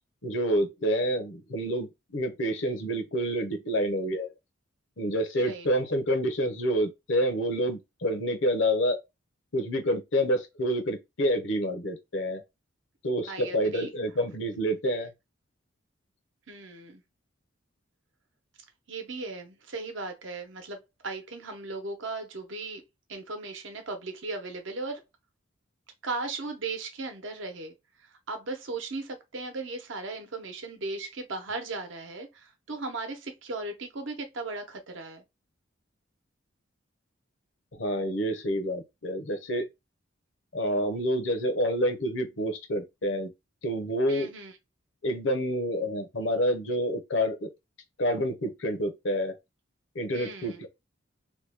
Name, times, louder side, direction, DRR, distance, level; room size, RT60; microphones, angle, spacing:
voice 1, 0.2-4.3 5.0-9.0 9.5-12.4 13.0-15.1 37.7-39.7 40.5-43.3 43.6-44.3 45.0-47.5 48.0-49.3 49.9-50.7, equal, 65° left, 0.8 m, -28 dB
voice 2, 13.3-13.9 16.5-17.0 18.9-22.8 23.1-25.0 26.0-27.7 28.3-35.2 44.1-44.5 50.1-50.7, right 3 dB, 65° right, 0.8 m, -37 dB
3.0 x 2.2 x 3.4 m
head